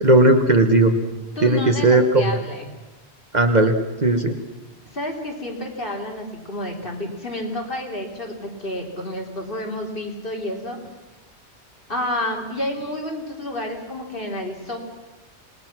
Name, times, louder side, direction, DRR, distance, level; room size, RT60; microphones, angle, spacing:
voice 1, 0.0-0.9 1.4-2.3 3.3-4.4, right 2 dB, 40° right, 6 dB, 1.3 m, -16 dB
voice 2, 1.4-2.7 4.9-10.8 11.9-14.8, left 1 dB, 50° left, -1 dB, 3.7 m, -30 dB
26.5 x 20.0 x 6.1 m, 1.1 s
omnidirectional pair, 1.2 m